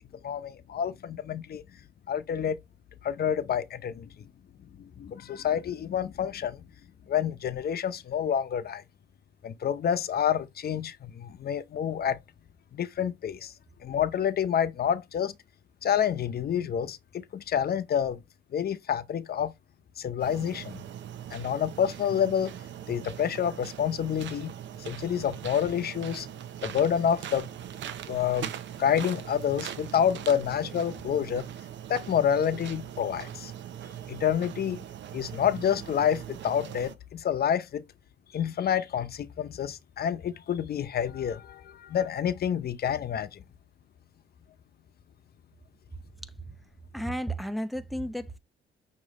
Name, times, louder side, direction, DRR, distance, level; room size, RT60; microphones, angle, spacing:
voice 1, 0.2-1.6 2.1-2.6 3.0-4.3 4.8-6.6 7.1-8.8 9.4-12.2 12.7-13.5 13.8-15.3 15.8-18.2 18.5-19.5 20.0-20.8 21.3-22.5 22.9-24.5 24.8-26.3 26.6-27.5 28.1-28.5 28.8-31.4 31.9-33.5 34.1-34.8 35.1-37.8 38.3-43.4, left 8 dB, 50° left, 0.7 m, -28 dB
sound 1, 20.2-37.0, right 10 dB, 70° right, 0.6 m, -41 dB
voice 2, 46.2-46.5 46.9-48.4, equal, ahead, 0.7 m, -33 dB
6.3 x 2.8 x 3.0 m
cardioid pair, 90°, 20 cm